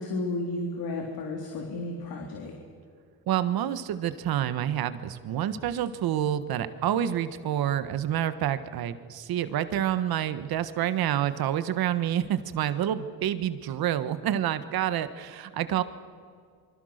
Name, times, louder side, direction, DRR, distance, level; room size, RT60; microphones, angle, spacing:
voice 1, 0.0-2.5, left 2 dB, 70° left, 1 dB, 3.6 m, -33 dB
voice 2, 3.3-15.8, right 11 dB, 70° right, 12 dB, 1.5 m, -28 dB
27.0 x 25.0 x 6.6 m, 2.2 s
cardioid pair, 110°, 38 cm